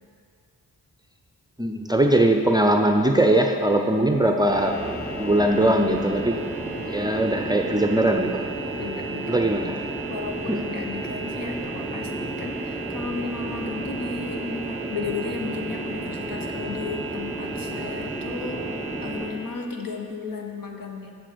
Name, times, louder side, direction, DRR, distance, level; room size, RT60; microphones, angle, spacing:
voice 1, 1.6-4.8 5.2-6.4 6.8-8.4 9.3-9.8 10.5-10.6, right 1 dB, 10° right, 3 dB, 0.5 m, -20 dB
sound 1, 4.4-19.3, right 2 dB, 5° left, 2.5 m, -32 dB
voice 2, 8.8-9.3 10.1-21.1, left 4 dB, 70° left, 2 dB, 1.2 m, -34 dB
7.6 x 6.9 x 6.7 m, 2.3 s
wide cardioid pair, 135°, 35 cm